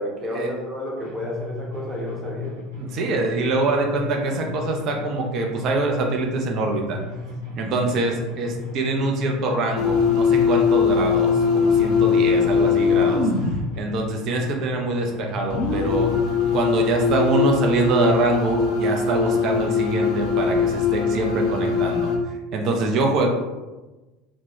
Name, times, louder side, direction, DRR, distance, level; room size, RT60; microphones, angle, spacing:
voice 1, 0.0-2.6, left 1 dB, 20° right, -3 dB, 0.8 m, -31 dB
sound 1, 1.0-17.0, left 3 dB, 90° right, 0.8 m, -35 dB
voice 2, 2.8-7.0 7.6-13.5 13.8-16.1 16.5-22.1 22.5-23.3, right 2 dB, 45° right, 1 dB, 0.5 m, -24 dB
sound 2, 9.7-13.6 15.5-22.2, left 6 dB, 55° left, 0.5 m, -21 dB
2.2 x 2.1 x 2.9 m, 1.1 s
figure-of-eight pair, 70°, 0 cm